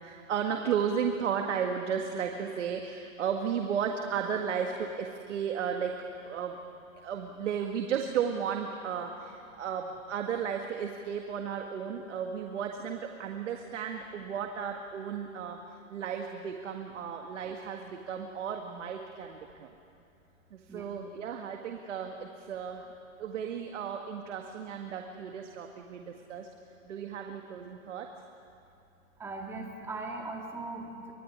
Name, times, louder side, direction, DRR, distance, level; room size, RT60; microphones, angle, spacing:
voice 1, 0.0-6.0 6.2-6.6 7.0-15.6 15.9-19.7 20.5-22.9 23.2-26.5 26.8-28.1, right 7 dB, 60° right, 3 dB, 1.9 m, -34 dB
voice 2, 29.2-31.1, right 3 dB, 5° right, 0 dB, 2.1 m, -39 dB
25.0 x 21.0 x 9.7 m, 2.6 s
hypercardioid pair, 170°, 41 cm